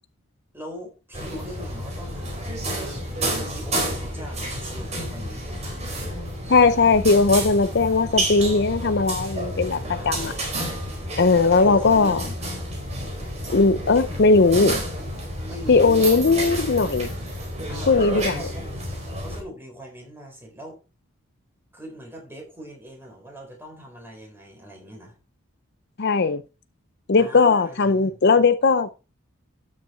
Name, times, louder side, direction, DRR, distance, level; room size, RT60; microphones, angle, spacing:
voice 1, 0.5-3.1 3.3-6.0 10.0-10.4 11.4-12.6 15.5-16.1 17.7-18.7 19.2-20.8 21.7-25.2 27.2-28.2, equal, 10° right, 4.1 m, -40 dB
sound 1, 1.1-19.4, right 1 dB, 30° right, 4.3 m, -30 dB
voice 2, 6.5-10.3 11.2-12.2 13.5-14.8 15.7-17.1 17.9-18.3 26.0-26.4 27.1-28.9, left 4 dB, 50° left, 0.6 m, -18 dB
12.5 x 6.6 x 4.4 m
head